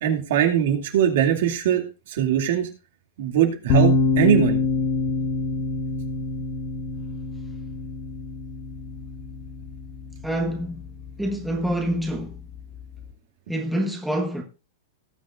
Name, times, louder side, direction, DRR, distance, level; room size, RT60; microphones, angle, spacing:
voice 1, 0.0-2.7 3.2-4.6, right 9 dB, 65° right, 2.5 m, -21 dB
sound 1, 3.7-13.1, left 3 dB, 40° left, 1.4 m, -27 dB
voice 2, 10.2-10.8 11.2-12.4 13.5-14.4, right 1 dB, ahead, 1.4 m, -26 dB
18.5 x 7.5 x 2.5 m
supercardioid pair, 160°, 0 cm